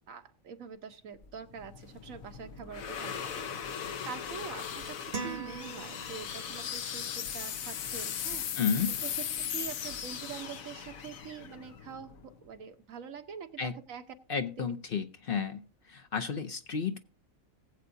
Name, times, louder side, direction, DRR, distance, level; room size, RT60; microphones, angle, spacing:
voice 1, 0.1-3.7 4.1-8.6 9.0-9.2 9.5-14.0 14.6-14.7, right 7 dB, 80° right, 8 dB, 1.3 m, -45 dB
sound 1, 1.2-12.5, left 8 dB, 80° left, 1.3 m, -38 dB
sound 2, 5.1-6.6, right 4 dB, 35° right, 0.7 m, -40 dB
voice 2, 8.6-9.0 13.6-13.7 14.3-15.6 15.9-17.0, left 6 dB, 50° left, 8 dB, 0.8 m, -32 dB
18.5 x 8.0 x 2.6 m, 0.36 s
omnidirectional pair, 1.4 m